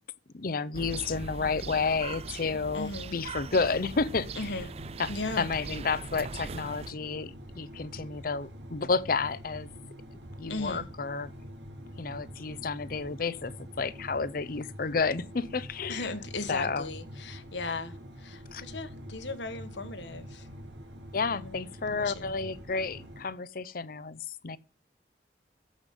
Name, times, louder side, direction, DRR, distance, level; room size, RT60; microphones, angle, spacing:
voice 1, 0.3-4.6 5.0-5.1 5.4-9.7 10.4-11.3 12.0-13.5 13.8-16.1 16.5-16.9 18.5-18.6 21.1-24.6, left 4 dB, 55° left, 0.6 m, -31 dB
sound 1, 0.7-6.9, right 4 dB, 35° right, 0.4 m, -40 dB
voice 2, 2.7-3.1 4.4-4.7 5.1-5.5 10.5-10.8 15.9-20.5 21.3-21.6 21.9-22.3, left 3 dB, 90° left, 1.4 m, -37 dB
sound 2, 3.6-23.3, equal, 90° right, 1.9 m, -46 dB
14.5 x 5.2 x 5.3 m
head